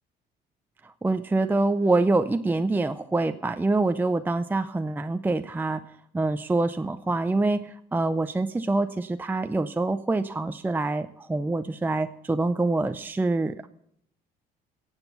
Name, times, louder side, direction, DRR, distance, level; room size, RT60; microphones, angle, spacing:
voice 1, 0.8-5.8 6.1-13.7, right 2 dB, 10° right, 9 dB, 0.5 m, -25 dB
16.0 x 8.1 x 7.0 m, 0.73 s
cardioid pair, 110°, 17 cm